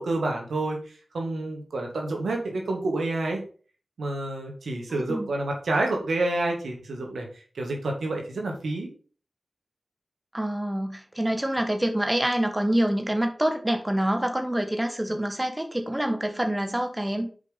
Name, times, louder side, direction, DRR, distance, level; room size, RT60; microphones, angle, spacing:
voice 1, 0.0-3.4 4.0-8.9, right 2 dB, 90° right, 1 dB, 2.1 m, -29 dB
voice 2, 4.9-5.3 10.3-17.3, right 1 dB, 15° right, 5 dB, 1.4 m, -26 dB
6.1 x 5.2 x 5.6 m, 0.40 s
cardioid pair, 50°, 0 cm